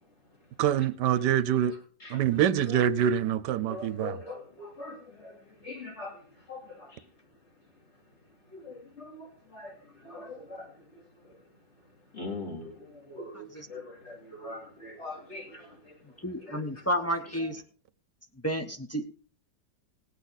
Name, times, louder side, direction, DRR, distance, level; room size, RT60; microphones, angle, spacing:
voice 1, 0.6-1.7 2.1-4.2, right 10 dB, 75° right, 1.3 m, -25 dB
voice 2, 3.7-7.0 8.5-10.7 11.2-11.4 12.1-16.0 16.4-16.8 17.4-17.5, left 2 dB, 35° left, 3.5 m, -42 dB
voice 3, 13.3-13.7 16.2-17.6 18.4-19.1, equal, 20° left, 0.4 m, -31 dB
18.5 x 8.3 x 4.0 m
omnidirectional pair, 1.9 m